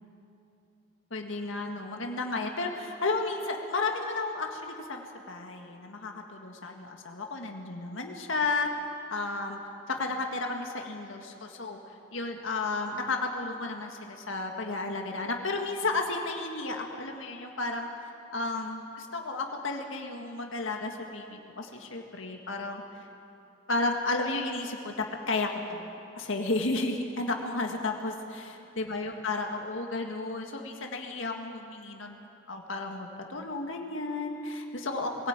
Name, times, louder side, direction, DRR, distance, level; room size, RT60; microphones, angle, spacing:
voice 1, 1.1-8.7 9.1-9.6 9.9-17.9 18.3-23.1 23.7-25.9 26.2-32.2 32.5-35.3, left 3 dB, 75° left, 2 dB, 1.8 m, -33 dB
22.0 x 16.5 x 8.9 m, 2.7 s
head